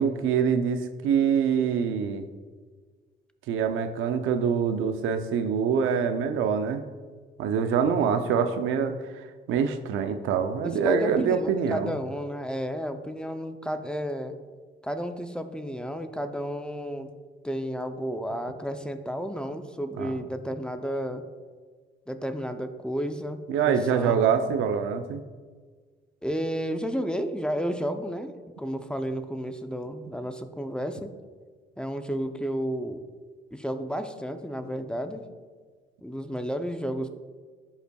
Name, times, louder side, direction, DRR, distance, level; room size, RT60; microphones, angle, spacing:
voice 1, 0.0-2.2 3.5-6.8 7.4-11.9 20.0-20.2 23.5-25.2, right 7 dB, 90° right, 8 dB, 0.6 m, -25 dB
voice 2, 7.9-8.2 10.6-14.3 14.8-17.1 17.4-21.2 22.1-24.2 26.2-28.3 28.6-31.1 31.8-33.0 33.5-35.3 36.0-37.1, equal, 5° left, 7 dB, 0.5 m, -32 dB
11.5 x 5.5 x 2.3 m, 1.5 s
cardioid pair, 90°, 20 cm